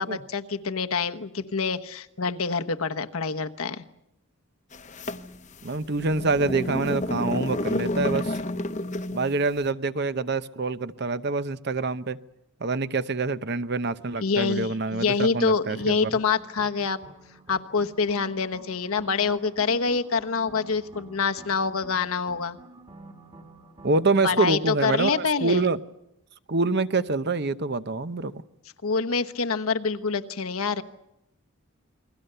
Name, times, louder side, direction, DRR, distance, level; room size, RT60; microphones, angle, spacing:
voice 1, 0.0-3.8 14.2-17.0 17.5-22.6 24.2-25.6 28.8-30.8, left 5 dB, 75° left, 7 dB, 1.2 m, -26 dB
sound 1, 4.7-9.4, left 1 dB, 35° left, 0.9 m, -30 dB
voice 2, 5.6-8.4 9.1-12.2 12.6-16.1 23.8-25.8 26.5-28.4, right 3 dB, 50° right, 13 dB, 0.8 m, -26 dB
sound 2, 15.7-24.3, right 2 dB, 25° right, 1.9 m, -49 dB
28.5 x 21.5 x 6.8 m, 0.84 s
head